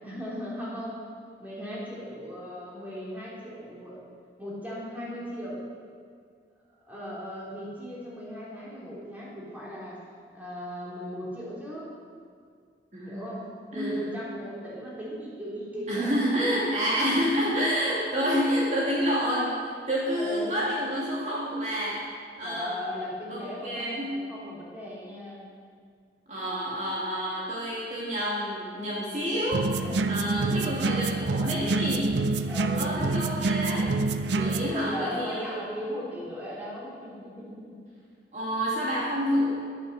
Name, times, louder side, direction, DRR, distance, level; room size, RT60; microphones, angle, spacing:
voice 1, 0.0-1.0 1.4-4.0 4.4-5.7 6.8-10.0 10.3-11.9 13.0-16.2 20.1-20.6 22.4-25.5 29.8-30.8 32.5-33.0 34.3-37.8, equal, 10° right, -7 dB, 3.6 m, -37 dB
voice 2, 12.9-13.4 13.7-14.0 15.9-22.1 22.4-22.8 23.3-24.3 26.3-32.3 32.7-34.0 34.4-35.6 38.3-39.5, equal, 40° right, -6 dB, 2.5 m, -28 dB
sound 1, 29.5-34.7, right 3 dB, 80° right, 0.6 m, -27 dB
12.0 x 10.0 x 6.7 m, 2.1 s
head